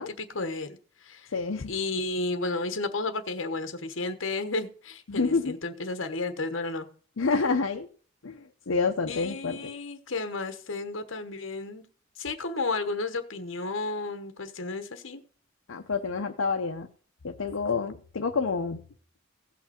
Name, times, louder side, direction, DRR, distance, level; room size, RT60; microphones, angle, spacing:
voice 1, 0.0-1.3 1.7-6.9 9.1-11.8 12.2-15.2, left 3 dB, 70° left, 8 dB, 1.2 m, -32 dB
voice 2, 1.3-1.7 5.1-5.6 7.2-7.9 8.2-9.7 15.7-16.9 17.2-18.8, left 4 dB, 90° left, 4 dB, 0.7 m, -28 dB
16.5 x 5.8 x 4.3 m, 0.44 s
head